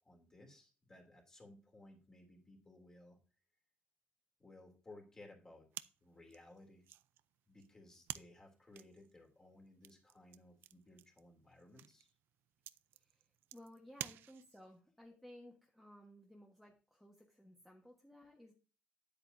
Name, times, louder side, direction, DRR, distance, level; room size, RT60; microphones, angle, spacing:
voice 1, 0.0-3.2 4.4-5.7 6.0-6.8 7.5-12.1, left 2 dB, 20° left, 2 dB, 2.9 m, -59 dB
sound 1, 5.7-14.8, right 13 dB, 85° right, 0.5 m, -52 dB
voice 2, 12.9-13.3 13.5-18.5, left 1 dB, 5° left, -1 dB, 1.4 m, -58 dB
10.0 x 8.5 x 2.7 m, 0.35 s
cardioid pair, 160°, 4 cm